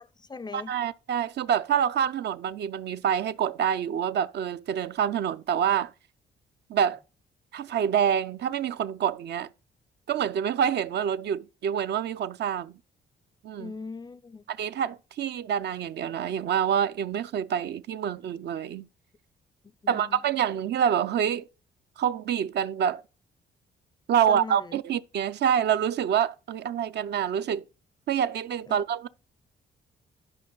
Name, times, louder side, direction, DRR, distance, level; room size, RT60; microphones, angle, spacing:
voice 1, 0.0-0.7 13.6-14.4 19.8-20.2 24.3-24.8 28.7-28.8, left 4 dB, 20° left, 0.4 m, -40 dB
voice 2, 0.5-5.9 6.7-7.0 7.5-9.5 10.1-12.8 13.4-13.7 14.5-18.9 19.9-21.5 22.0-23.0 24.1-27.7 28.1-29.1, right 8 dB, 60° right, 0.5 m, -27 dB
11.0 x 5.3 x 3.8 m
cardioid pair, 90°, 20 cm